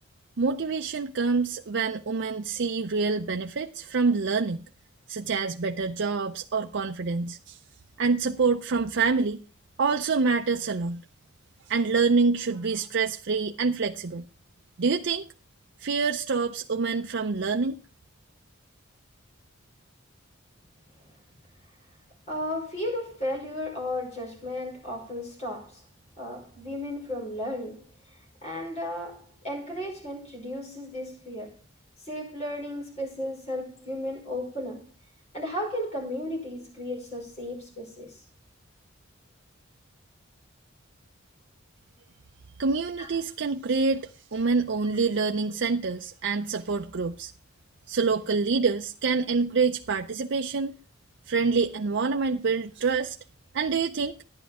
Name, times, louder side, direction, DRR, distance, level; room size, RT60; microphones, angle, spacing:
voice 1, 0.4-4.6 5.1-7.6 8.0-9.4 9.8-11.0 11.7-14.3 14.8-15.2 15.8-17.8 42.6-47.3 47.9-50.8 51.3-53.2 53.5-54.1, right 4 dB, 60° right, 0.5 m, -26 dB
voice 2, 22.3-25.8 26.2-31.6 32.0-34.9 35.3-38.3 43.0-43.1, left 1 dB, 35° left, 5.2 m, -34 dB
11.5 x 10.5 x 3.6 m
head